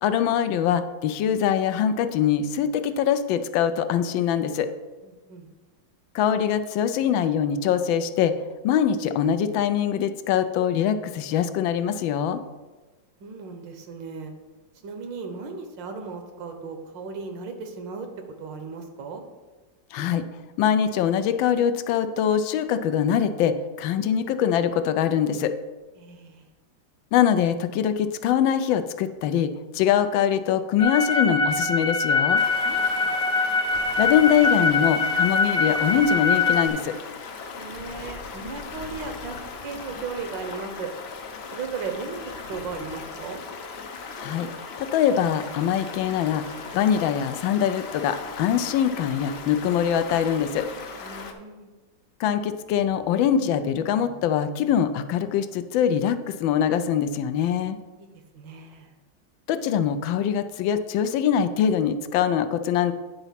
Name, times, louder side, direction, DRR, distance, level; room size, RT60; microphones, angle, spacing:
voice 1, 0.0-4.7 6.1-8.3 8.6-12.4 19.9-20.2 20.6-25.5 27.1-32.4 34.0-37.0 44.2-44.5 44.8-46.5 46.7-50.7 52.2-57.8 59.5-62.9, left 8 dB, 90° left, 10 dB, 1.3 m, -23 dB
voice 2, 5.0-5.5 13.2-14.3 14.8-19.2 26.0-26.4 32.7-33.2 37.5-40.9 41.5-43.4 51.0-51.7 58.0-58.1 58.3-58.9, right 4 dB, 75° right, 6 dB, 1.6 m, -36 dB
sound 1, 30.8-36.7, left 4 dB, 50° left, 1.0 m, -23 dB
Stream, 32.4-51.3, left 4 dB, 70° left, 0.6 m, -38 dB
9.6 x 4.0 x 5.7 m, 1.3 s
omnidirectional pair, 2.1 m